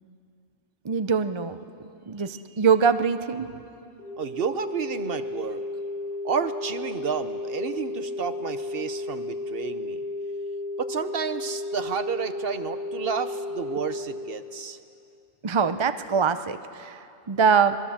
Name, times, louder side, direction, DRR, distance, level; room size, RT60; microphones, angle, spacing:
voice 1, 0.8-3.5 15.4-17.8, right 6 dB, 30° right, 10 dB, 0.6 m, -24 dB
sound 1, 4.0-14.0, left 2 dB, 10° left, 5.7 m, -33 dB
voice 2, 4.2-5.6 6.2-10.0 10.8-14.8, right 6 dB, 55° right, 11 dB, 1.0 m, -31 dB
26.0 x 20.5 x 7.3 m, 2.6 s
omnidirectional pair, 1.2 m